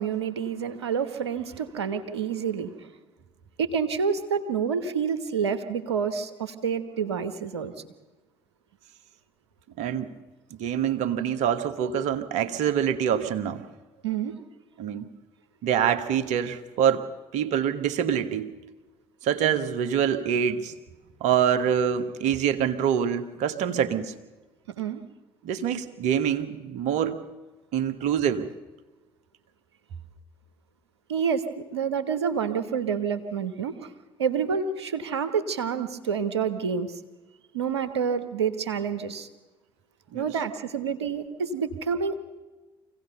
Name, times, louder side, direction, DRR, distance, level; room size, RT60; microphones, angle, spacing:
voice 1, 0.0-2.9 3.6-7.7 14.0-14.3 24.8-25.0 31.1-33.9 34.2-37.0 37.5-39.3 40.1-42.2, right 6 dB, 80° right, 9 dB, 1.2 m, -28 dB
voice 2, 9.8-10.1 10.6-13.6 14.8-15.1 15.6-18.5 19.2-20.7 21.2-24.1 25.4-27.2 27.7-28.5 40.1-40.3, right 8 dB, 60° right, 9 dB, 1.4 m, -25 dB
25.0 x 16.5 x 6.8 m, 1.2 s
figure-of-eight pair, 50°, 14 cm